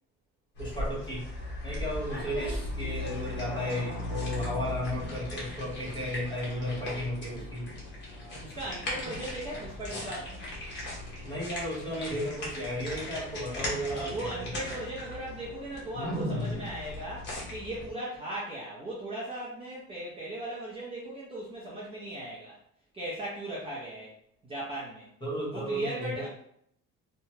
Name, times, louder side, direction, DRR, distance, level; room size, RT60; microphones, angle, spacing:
sound 1, 0.5-17.9, left 1 dB, 35° left, 1.0 m, -37 dB
voice 1, 0.6-1.3 1.6-7.7 11.2-14.5 25.2-26.3, equal, 15° left, -6 dB, 1.1 m, -34 dB
voice 2, 6.4-7.1 8.1-10.4 13.8-22.6 22.9-24.1 24.4-25.1 25.5-26.3, right 1 dB, 20° right, -7 dB, 0.6 m, -38 dB
2.8 x 2.3 x 2.7 m, 0.71 s
cardioid pair, 145°, 30 cm